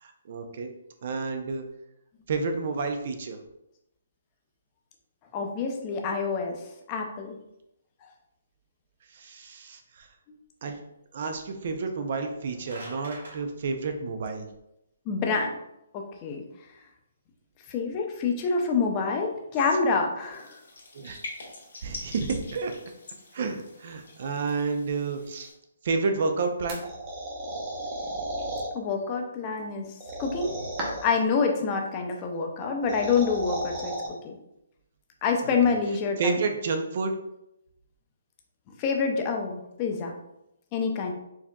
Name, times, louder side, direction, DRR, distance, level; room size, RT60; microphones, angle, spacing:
voice 1, 0.0-0.7 1.0-1.6 2.3-3.4 9.1-10.1 10.6-10.8 11.1-14.5 20.9-21.2 21.8-22.7 23.3-25.5 25.8-26.8 35.4-35.6 36.2-37.1, right 4 dB, 45° right, 6 dB, 0.5 m, -30 dB
voice 2, 5.3-6.6 6.9-7.4 15.1-15.5 15.9-16.4 17.7-20.6 28.7-29.9 30.2-30.5 31.0-34.0 34.2-34.4 35.2-36.4 38.8-40.1 40.7-41.1, left 5 dB, 20° left, 2 dB, 0.5 m, -27 dB
sound 1, 12.3-13.4, right 1 dB, 85° right, 1.5 m, -44 dB
sound 2, 20.3-25.5, left 2 dB, 75° left, 1.2 m, -45 dB
sound 3, 26.7-28.7 30.0-31.2 32.6-34.1, right 1 dB, 25° right, 0.9 m, -33 dB
4.5 x 2.8 x 2.3 m, 0.85 s
hypercardioid pair, 165°, 0 cm